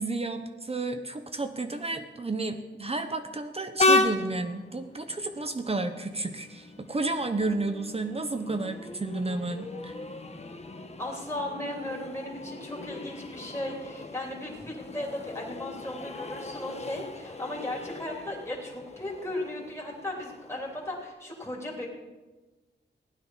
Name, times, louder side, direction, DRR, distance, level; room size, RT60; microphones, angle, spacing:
voice 1, 0.0-9.9, right 3 dB, 30° right, 6 dB, 1.0 m, -32 dB
Train, 3.8-21.1, left 2 dB, 35° left, 1.1 m, -34 dB
voice 2, 11.0-21.9, left 1 dB, 15° left, -3 dB, 3.1 m, -36 dB
15.5 x 9.8 x 5.6 m, 1.2 s
wide cardioid pair, 80°, 19 cm